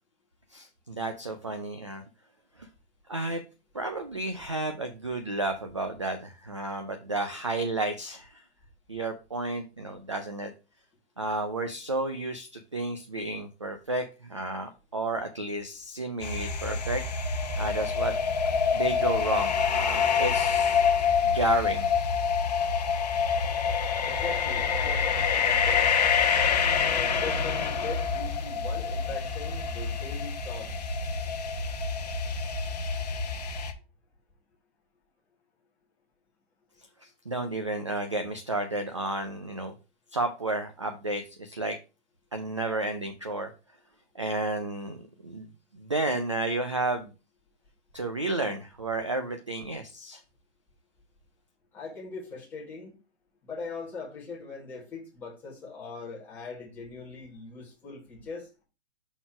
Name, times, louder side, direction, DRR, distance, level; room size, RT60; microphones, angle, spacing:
voice 1, 0.5-2.0 2.6-2.7 3.1-3.4 3.7-8.4 8.9-10.5 11.2-17.0 17.6-18.1 18.7-20.9 21.2-21.9 37.3-39.7 40.1-41.8 42.3-43.5 44.2-47.1 47.9-50.2, right 2 dB, 30° right, 7 dB, 0.4 m, -32 dB
sound 1, 16.2-33.7, left 6 dB, 35° left, 0.9 m, -27 dB
voice 2, 24.0-25.9 26.8-30.7 51.7-52.9 53.4-58.5, left 4 dB, 5° left, -5 dB, 1.3 m, -40 dB
5.9 x 4.0 x 4.9 m, 0.31 s
hypercardioid pair, 175°, 34 cm